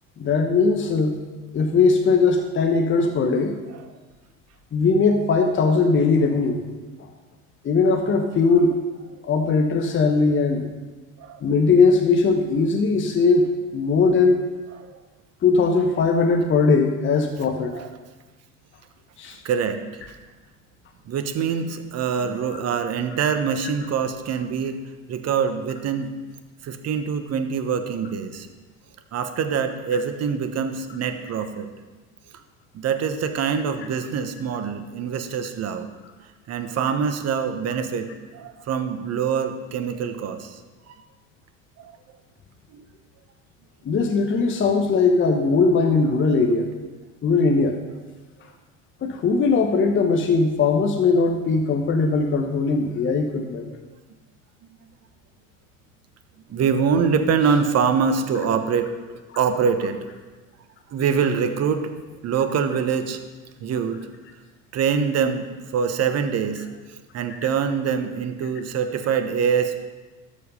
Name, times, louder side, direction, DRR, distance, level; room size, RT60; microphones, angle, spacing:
voice 1, 0.2-1.2 1.5-3.6 4.7-6.6 7.6-8.7 9.3-10.7 11.4-13.4 13.7-14.3 15.4-17.7 19.2-19.4 43.8-46.7 47.2-47.8 49.0-53.7, left 4 dB, 30° left, 3 dB, 1.1 m, -19 dB
voice 2, 11.2-11.5 14.7-14.9 17.7-17.9 19.4-20.1 21.0-24.8 25.1-26.1 26.6-28.5 29.1-31.7 32.7-35.9 36.5-40.6 40.9-41.0 41.8-42.0 42.7-42.8 53.4-53.5 54.6-54.8 56.5-58.9 59.4-60.0 60.9-61.9 62.2-63.2 63.6-64.0 64.7-65.5 65.7-69.8, right 6 dB, 40° right, 8 dB, 1.2 m, -24 dB
12.5 x 5.2 x 5.6 m, 1.2 s
hypercardioid pair, 80°, 40 cm